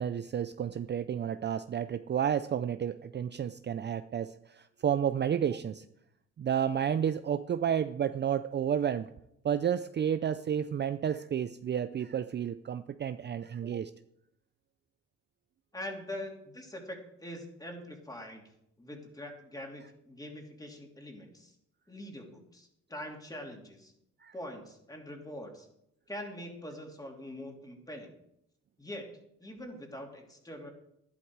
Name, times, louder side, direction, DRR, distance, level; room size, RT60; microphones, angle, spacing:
voice 1, 0.0-5.8 6.4-9.1 9.4-13.9 24.2-24.3, right 9 dB, 35° right, 11 dB, 0.5 m, -31 dB
voice 2, 15.7-18.4 18.8-21.5 21.9-23.9 24.3-25.7 26.1-28.1 28.8-29.1 29.4-30.7, left 1 dB, 10° left, 2 dB, 3.0 m, -43 dB
11.5 x 11.5 x 4.8 m, 0.78 s
cardioid pair, 90°, 30 cm